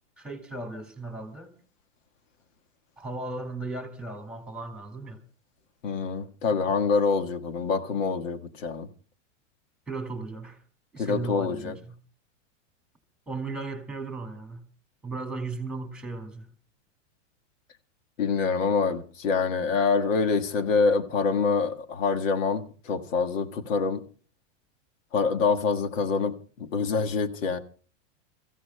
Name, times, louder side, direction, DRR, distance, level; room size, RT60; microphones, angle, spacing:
voice 1, 0.2-1.5 3.0-5.2 9.9-10.6 10.9-12.0 13.3-14.6 15.0-16.5, right 3 dB, ahead, 2.1 m, -36 dB
voice 2, 5.8-8.9 11.0-11.8 18.2-24.0 25.1-27.6, left 4 dB, 85° left, 1.6 m, -26 dB
30.0 x 15.0 x 2.2 m
supercardioid pair, 145°, 38 cm